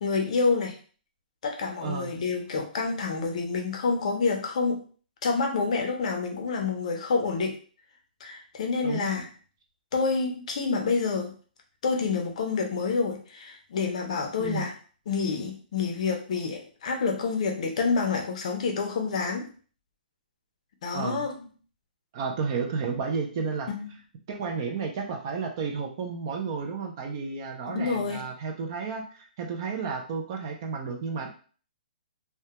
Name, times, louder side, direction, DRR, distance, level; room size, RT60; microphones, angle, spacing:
voice 1, 0.0-0.8 1.4-4.8 5.2-7.6 8.2-9.3 9.9-11.3 11.8-14.7 15.1-19.5 20.8-21.5 23.7-23.9 27.7-28.2, left 4 dB, 45° left, 3 dB, 0.5 m, -28 dB
voice 2, 1.8-2.1 8.8-9.1 14.4-14.7 20.9-21.3 22.1-23.7 24.3-31.3, right 5 dB, 25° right, 2 dB, 0.3 m, -32 dB
2.1 x 2.1 x 2.8 m, 0.40 s
hypercardioid pair, 170°, 5 cm